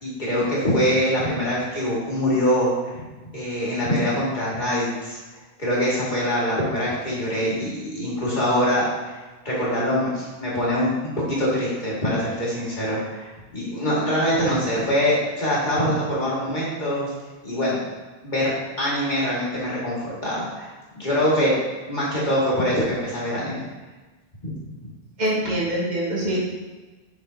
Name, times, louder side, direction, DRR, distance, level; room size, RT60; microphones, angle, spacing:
voice 1, 0.0-2.7 3.3-5.2 5.6-9.1 9.4-17.1 17.4-17.8 18.2-18.5 18.8-20.7 20.9-21.6 21.9-23.6 24.4-24.5, equal, 50° left, -7 dB, 2.2 m, -24 dB
voice 2, 25.2-26.4, right 1 dB, 45° right, -6 dB, 1.8 m, -24 dB
7.0 x 5.8 x 2.8 m, 1.2 s
omnidirectional pair, 1.0 m